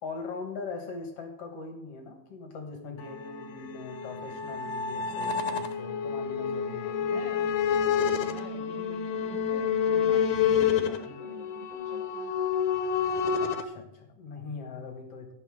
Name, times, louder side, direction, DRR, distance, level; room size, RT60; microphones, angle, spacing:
voice 1, 0.0-7.1 13.4-15.3, left 4 dB, 55° left, 4 dB, 1.8 m, -41 dB
sound 1, 3.0-13.7, left 7 dB, 75° left, 2.1 m, -29 dB
voice 2, 7.1-7.5 8.2-12.3, right 2 dB, 60° right, -4 dB, 5.9 m, -46 dB
17.0 x 6.1 x 3.6 m, 0.82 s
omnidirectional pair, 4.1 m